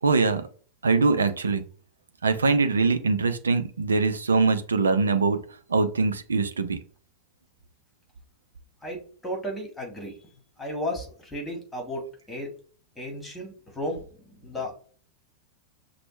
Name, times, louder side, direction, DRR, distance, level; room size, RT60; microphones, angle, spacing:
voice 1, 0.0-0.5 0.8-1.6 2.2-5.4 5.7-6.8, right 4 dB, 70° right, 10 dB, 0.5 m, -23 dB
voice 2, 8.8-10.1 10.6-12.5 12.9-14.7, equal, 5° left, 0 dB, 1.7 m, -34 dB
5.9 x 2.2 x 3.2 m, 0.43 s
figure-of-eight pair, 90°, 0 cm